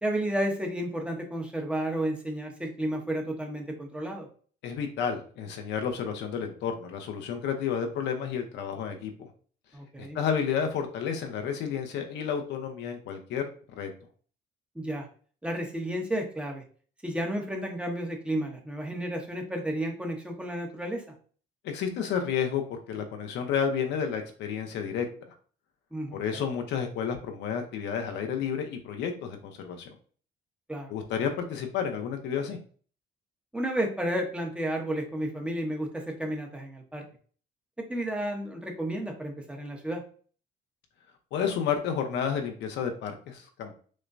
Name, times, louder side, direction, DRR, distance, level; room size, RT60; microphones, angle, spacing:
voice 1, 0.0-4.3 9.7-10.2 14.7-15.1 15.4-16.6 17.0-21.0 25.9-26.4 30.7-30.9 33.5-37.0 37.8-40.0, right 1 dB, 5° right, 1 dB, 0.9 m, -32 dB
voice 2, 4.6-9.3 10.0-13.9 21.6-25.3 26.1-29.9 30.9-32.6 41.3-43.8, left 7 dB, 85° left, 5 dB, 0.8 m, -31 dB
6.2 x 2.2 x 2.6 m, 0.43 s
cardioid pair, 120°, 18 cm